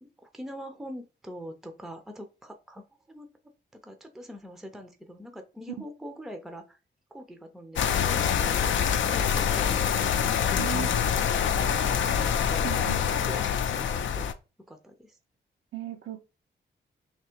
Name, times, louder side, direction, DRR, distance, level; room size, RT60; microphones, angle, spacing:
voice 1, 0.0-3.3 3.7-6.8 7.1-10.0 10.4-11.2 11.5-14.3 14.7-15.2, equal, ahead, 0.5 m, -43 dB
sound 1, 7.8-14.3, left 8 dB, 75° left, 0.5 m, -25 dB
voice 2, 10.6-10.9 12.6-13.0 15.7-16.2, right 12 dB, 80° right, 0.6 m, -36 dB
3.4 x 2.8 x 4.4 m
wide cardioid pair, 145°, 20 cm